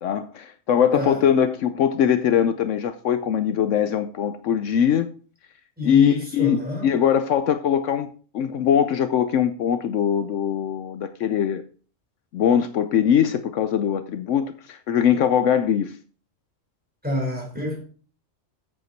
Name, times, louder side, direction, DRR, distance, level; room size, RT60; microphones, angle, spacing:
voice 1, 0.0-5.1 5.8-8.1 8.3-11.6 12.3-15.9, left 8 dB, 70° left, 1.0 m, -21 dB
voice 2, 5.8-7.0 17.0-17.9, left 1 dB, 5° right, 4.1 m, -29 dB
8.0 x 7.9 x 4.5 m
omnidirectional pair, 1.4 m